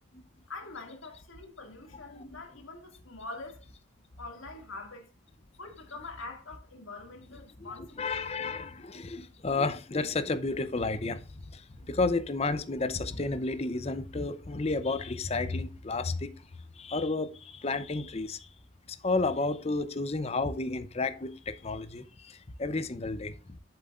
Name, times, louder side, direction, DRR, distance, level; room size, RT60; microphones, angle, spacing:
voice 1, 0.5-3.6 4.2-5.1 5.6-8.1, left 3 dB, 90° left, 2.2 m, -44 dB
voice 2, 8.0-11.2 11.5-11.6 11.9-16.3 16.8-18.4 19.0-22.0 22.6-23.3, left 3 dB, 30° left, 0.6 m, -31 dB
7.9 x 6.9 x 2.5 m
head